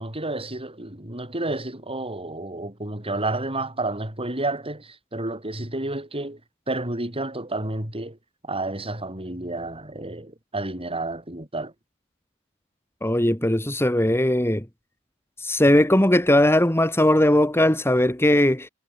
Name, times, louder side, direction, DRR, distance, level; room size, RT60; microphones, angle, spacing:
voice 1, 0.0-6.4 6.7-8.2 8.4-11.7, right 2 dB, 25° right, 7.0 m, -30 dB
voice 2, 13.0-14.6 15.4-18.7, left 1 dB, 10° left, 2.6 m, -19 dB
head